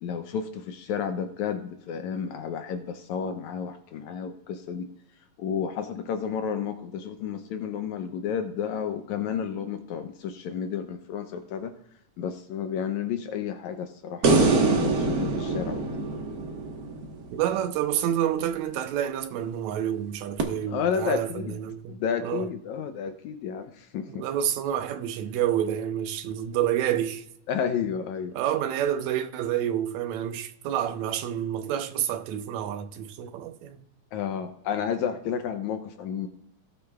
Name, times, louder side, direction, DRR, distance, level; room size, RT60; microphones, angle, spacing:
voice 1, 0.0-4.9 5.4-11.7 12.2-16.1 20.7-21.6 21.9-24.3 27.5-28.3 34.1-36.3, left 7 dB, 75° left, 2.0 m, -31 dB
sound 1, 14.2-17.6 20.4-20.5, right 3 dB, 45° right, 1.2 m, -24 dB
voice 2, 17.3-22.5 24.1-27.2 28.3-33.8, right 10 dB, 75° right, 2.0 m, -28 dB
18.5 x 9.3 x 2.4 m
omnidirectional pair, 3.5 m